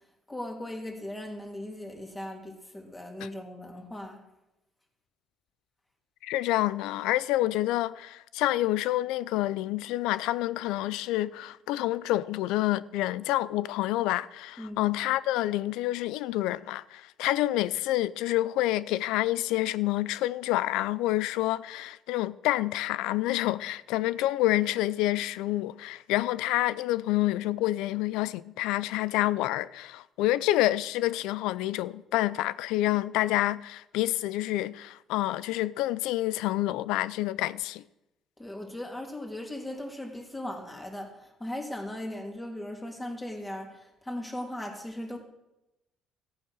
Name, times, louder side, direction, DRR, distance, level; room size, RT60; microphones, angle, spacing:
voice 1, 0.3-4.2 14.6-14.9 38.4-45.2, left 1 dB, 15° left, 2.9 m, -38 dB
voice 2, 6.2-37.8, left 15 dB, 85° left, 0.4 m, -28 dB
14.5 x 8.6 x 6.3 m
cardioid pair, 95°, 0 cm